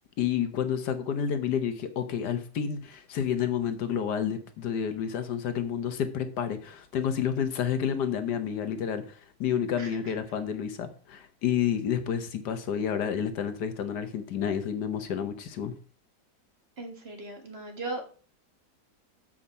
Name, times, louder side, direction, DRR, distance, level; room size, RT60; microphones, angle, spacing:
voice 1, 0.2-9.0 9.4-15.7, left 8 dB, 85° left, 9 dB, 1.6 m, -30 dB
voice 2, 9.8-10.1 16.8-18.0, right 2 dB, 40° right, 4 dB, 1.7 m, -38 dB
7.4 x 5.1 x 5.5 m, 0.40 s
omnidirectional pair, 1.7 m